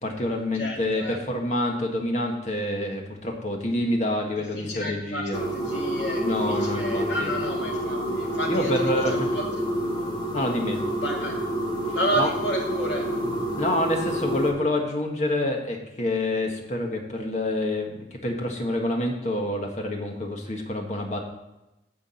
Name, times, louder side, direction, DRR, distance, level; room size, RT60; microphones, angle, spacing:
voice 1, 0.0-5.4 6.2-7.3 8.5-9.3 10.3-10.8 11.9-12.3 13.6-21.2, left 1 dB, 40° left, 2 dB, 1.6 m, -27 dB
voice 2, 0.6-1.2 4.7-8.7 9.3-9.4 11.0-11.4 11.9-13.1, equal, 85° left, -1 dB, 2.5 m, -31 dB
sound 1, 5.3-14.5, right 1 dB, 25° left, 1.8 m, -28 dB
9.9 x 5.1 x 7.7 m, 0.96 s
head